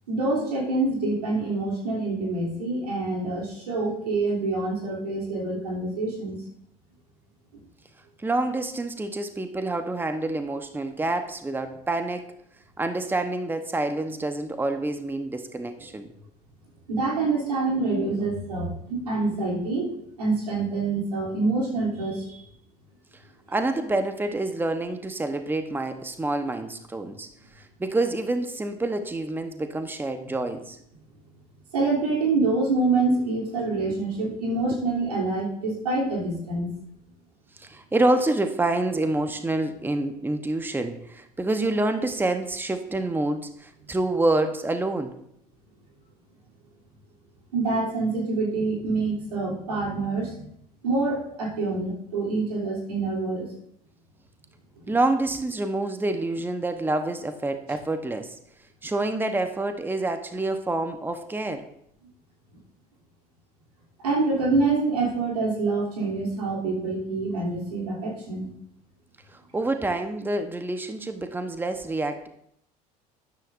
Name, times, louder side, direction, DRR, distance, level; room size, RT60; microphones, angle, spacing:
voice 1, 0.1-6.3 16.9-22.4 31.7-36.7 47.5-50.5 50.8-53.5 54.9-55.0 64.0-68.5, right 3 dB, 85° right, -3 dB, 3.2 m, -26 dB
voice 2, 8.2-12.3 12.8-16.1 23.5-30.8 37.6-45.2 54.9-58.4 58.8-61.7 69.3-72.3, right 2 dB, 10° right, 8 dB, 1.0 m, -27 dB
13.0 x 10.0 x 2.6 m, 0.71 s
hypercardioid pair, 70°, 20 cm